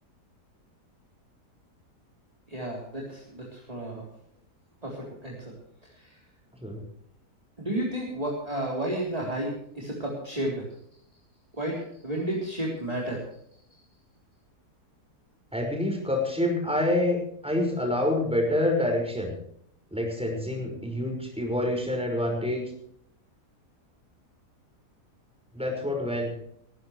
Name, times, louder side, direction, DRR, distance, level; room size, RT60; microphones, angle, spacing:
voice 1, 2.5-4.1 4.8-5.5 5.9-6.2 7.6-10.7 11.5-13.2, right 1 dB, 20° right, -4 dB, 3.9 m, -32 dB
voice 2, 15.5-17.2 17.4-19.3 19.9-22.6 25.5-26.3, left 1 dB, 5° right, 1 dB, 5.8 m, -27 dB
20.0 x 17.5 x 3.3 m, 0.68 s
omnidirectional pair, 1.7 m